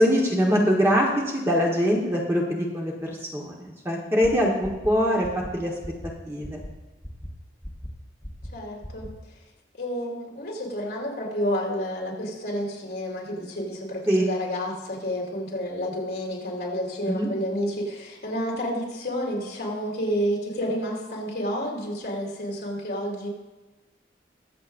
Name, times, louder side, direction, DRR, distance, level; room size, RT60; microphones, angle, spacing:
voice 1, 0.0-5.3 5.5-5.7 6.2-6.6 14.1-14.3 17.1-17.3, equal, 15° right, -2 dB, 1.3 m, -23 dB
sound 1, 4.2-4.3 4.6-4.9 5.2-5.5 5.8-6.1 6.4-6.7 7.0-7.3 7.6-7.9 8.2-8.5 8.8-9.1, equal, 10° left, 1.3 m, -37 dB
voice 2, 8.5-9.1 9.8-23.3, equal, 60° left, -2 dB, 3.3 m, -30 dB
22.0 x 7.7 x 2.6 m, 1.2 s
head